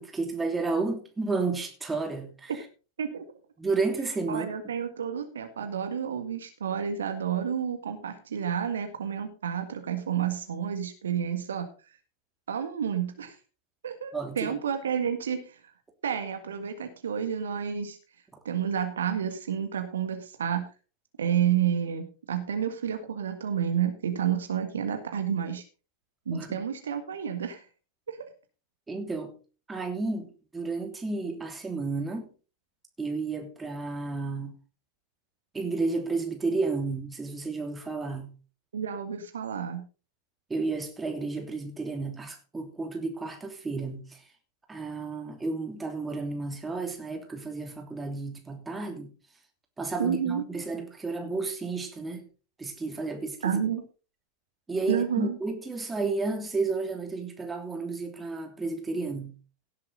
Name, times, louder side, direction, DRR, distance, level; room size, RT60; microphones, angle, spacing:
voice 1, 0.0-2.5 3.6-4.5 14.1-14.5 26.3-26.5 28.9-29.3 29.7-32.3 33.0-34.5 35.5-38.3 40.5-44.0 44.7-49.1 49.8-52.2 52.6-53.6 54.7-59.3, right 3 dB, 10° right, 3.0 m, -32 dB
voice 2, 4.3-11.7 12.5-13.4 13.8-15.6 16.0-18.0 18.4-20.7 21.2-25.6 26.2-27.6 28.1-28.3 38.7-39.8 50.0-50.4 53.4-53.8 54.9-55.4, right 8 dB, 65° right, 1.7 m, -30 dB
17.0 x 7.7 x 4.0 m
figure-of-eight pair, 90°, 0 cm